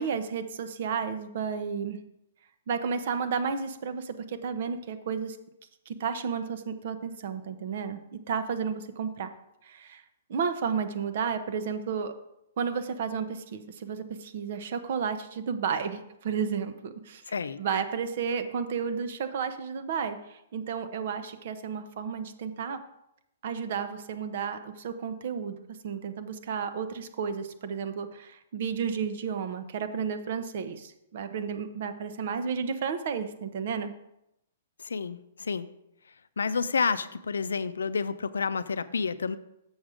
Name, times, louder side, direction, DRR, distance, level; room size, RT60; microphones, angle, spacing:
voice 1, 0.0-2.0 2.7-5.4 5.9-9.3 9.6-10.0 10.3-12.1 12.6-17.2 17.6-22.8 23.4-25.6 25.8-33.9, right 6 dB, 60° right, 9 dB, 0.9 m, -32 dB
voice 2, 17.3-17.6 34.8-35.7 36.4-39.4, left 5 dB, 90° left, 14 dB, 0.4 m, -29 dB
7.2 x 6.1 x 5.0 m, 0.83 s
hypercardioid pair, 135°, 0 cm